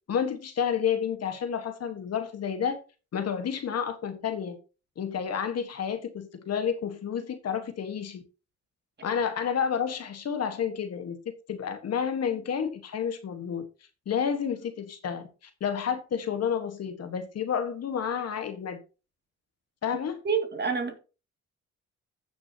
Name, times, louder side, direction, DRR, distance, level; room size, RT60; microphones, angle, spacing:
voice 1, 0.1-2.8 3.1-4.6 5.0-8.2 9.0-11.2 11.5-13.6 14.1-15.3 15.6-18.8 19.8-20.2, left 7 dB, 55° left, 1.5 m, -30 dB
voice 2, 20.2-21.0, right 5 dB, 35° right, 2.3 m, -27 dB
15.5 x 6.2 x 2.9 m
cardioid pair, 90°, 30 cm